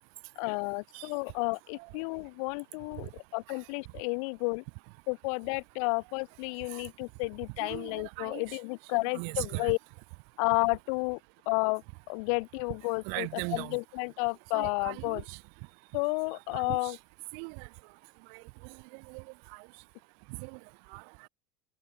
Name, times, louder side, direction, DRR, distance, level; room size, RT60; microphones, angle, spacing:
voice 1, 0.4-4.6 5.1-9.8 10.4-11.2 11.5-15.3 15.9-17.0, left 31 dB, 75° left, 0.6 m, -32 dB
voice 2, 7.6-8.6 8.9-9.7 13.0-13.8 14.5-15.4 16.5-17.0 17.3-17.7 18.3-19.2 19.5-19.7 20.3-20.6 20.9-21.0, right 40 dB or more, 65° right, 1.1 m, -39 dB
cardioid pair, 160°, 18 cm